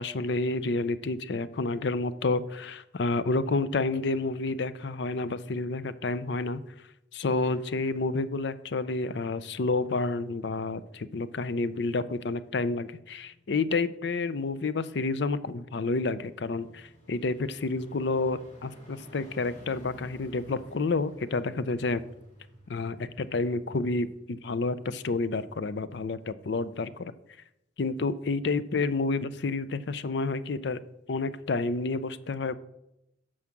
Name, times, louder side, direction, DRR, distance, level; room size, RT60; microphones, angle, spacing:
voice 1, 0.0-6.6 7.1-22.0 22.7-27.1 27.8-30.8 31.1-32.5, left 3 dB, 65° left, 15 dB, 0.5 m, -29 dB
sound 1, 11.9-25.4 25.7-25.8, equal, 40° left, 4.2 m, -56 dB
9.6 x 6.4 x 5.9 m, 0.86 s
head